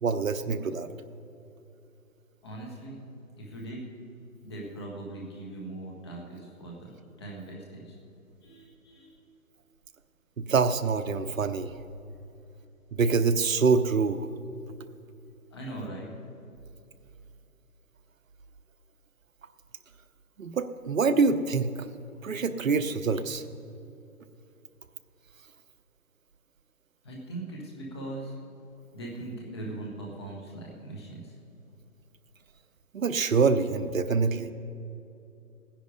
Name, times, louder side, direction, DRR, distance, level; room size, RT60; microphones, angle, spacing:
voice 1, 0.0-0.9 10.4-11.7 12.9-14.3 20.4-21.7 22.2-23.4 32.9-34.5, right 4 dB, 60° right, 10 dB, 0.9 m, -25 dB
voice 2, 2.4-3.0 3.4-3.9 4.4-6.9 7.2-7.9 8.4-9.2 15.5-16.1 27.0-28.3 28.9-31.3, right 2 dB, 15° left, -2 dB, 1.4 m, -40 dB
16.5 x 10.5 x 5.1 m, 2.8 s
hypercardioid pair, 170°, 45 cm